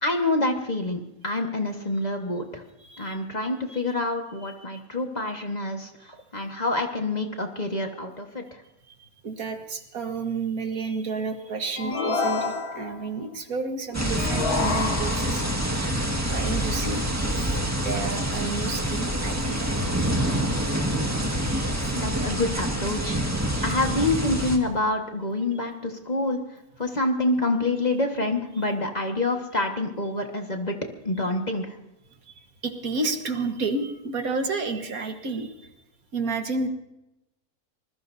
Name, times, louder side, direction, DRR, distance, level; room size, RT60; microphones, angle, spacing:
voice 1, 0.0-2.6 3.0-5.9 6.3-8.4 21.9-23.2 23.6-26.4 26.8-30.8 31.0-31.7, left 2 dB, 30° left, 3 dB, 1.6 m, -27 dB
voice 2, 2.8-3.2 3.7-3.8 4.4-4.5 8.9-15.6 16.3-17.5 17.8-21.9 23.4-23.8 32.3-35.7 36.1-36.7, right 3 dB, 70° right, 5 dB, 1.9 m, -32 dB
sound 1, 11.8-13.1 14.2-15.5, left 4 dB, 80° left, 2.3 m, -28 dB
sound 2, 13.9-24.6, right 1 dB, 10° right, 1.8 m, -26 dB
25.5 x 21.0 x 2.7 m, 0.89 s
omnidirectional pair, 1.6 m